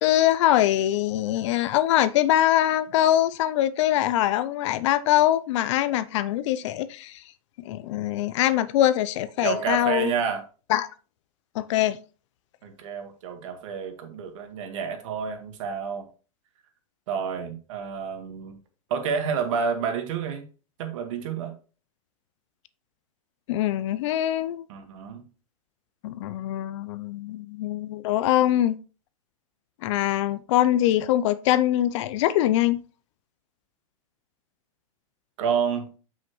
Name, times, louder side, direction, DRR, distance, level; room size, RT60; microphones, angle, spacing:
voice 1, 0.0-7.1 7.7-10.1 10.7-10.9 11.6-12.0 23.5-24.6 26.0-28.8 29.8-32.8, left 13 dB, 55° left, 0.6 m, -23 dB
voice 2, 9.4-10.4 12.6-16.1 17.1-18.6 18.9-20.5 20.8-21.5 24.7-25.2 35.4-35.9, right 6 dB, 60° right, 1.8 m, -29 dB
7.5 x 5.8 x 3.1 m
hypercardioid pair, 120°, 18 cm